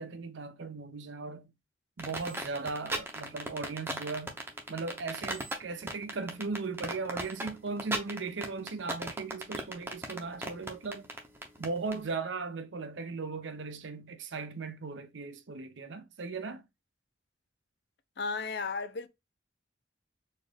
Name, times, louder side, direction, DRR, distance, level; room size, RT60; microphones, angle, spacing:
voice 1, 0.0-1.5 2.0-4.4 4.7-11.1 11.6-16.6, right 4 dB, 75° right, 0.6 m, -37 dB
sound 1, 2.0-12.0, right 1 dB, 10° right, 0.6 m, -36 dB
voice 2, 18.2-19.1, left 4 dB, 60° left, 0.5 m, -34 dB
4.2 x 2.4 x 3.3 m
head